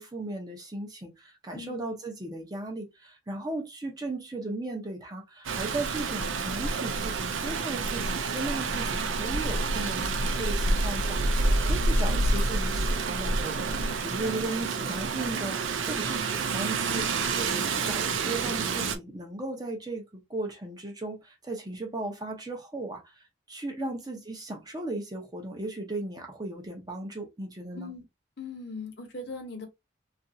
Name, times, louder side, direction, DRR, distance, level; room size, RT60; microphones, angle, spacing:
voice 1, 0.0-27.9, right 2 dB, 20° right, 0.6 m, -37 dB
voice 2, 1.5-1.9 14.2-14.5 23.8-23.9 27.7-28.0 28.4-29.7, left 3 dB, 55° left, 0.9 m, -40 dB
Rain, 5.4-19.0, right 3 dB, 85° right, 0.5 m, -28 dB
2.9 x 2.5 x 2.6 m
head